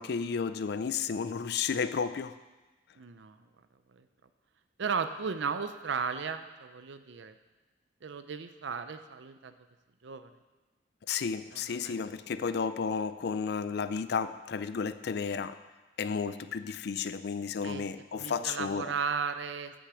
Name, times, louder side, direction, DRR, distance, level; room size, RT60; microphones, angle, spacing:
voice 1, 0.0-2.4 11.1-15.6 16.0-18.9, left 6 dB, 60° left, 12 dB, 0.4 m, -32 dB
voice 2, 3.0-3.4 3.9-4.1 4.8-7.3 8.0-9.5 10.0-10.3 11.5-11.9 17.6-17.9 18.1-19.7, right 6 dB, 70° right, 10 dB, 0.5 m, -35 dB
8.1 x 6.3 x 7.0 m, 1.2 s
head